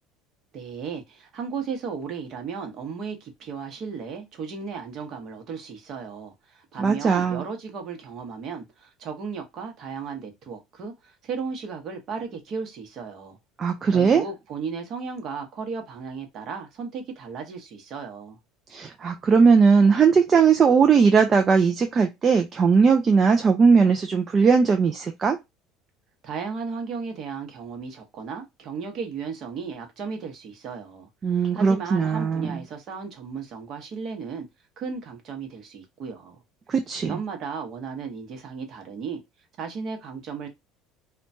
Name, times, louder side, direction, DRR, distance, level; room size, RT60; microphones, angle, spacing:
voice 1, 0.5-13.4 13.9-18.4 26.2-34.5 34.8-36.4 37.0-39.2 39.6-40.5, right 5 dB, 40° right, 0.9 m, -35 dB
voice 2, 6.8-7.4 13.6-14.2 18.7-25.4 31.2-32.5 36.7-37.1, right 5 dB, 25° right, 0.3 m, -19 dB
3.0 x 2.2 x 2.6 m
cardioid pair, 155°, 0 cm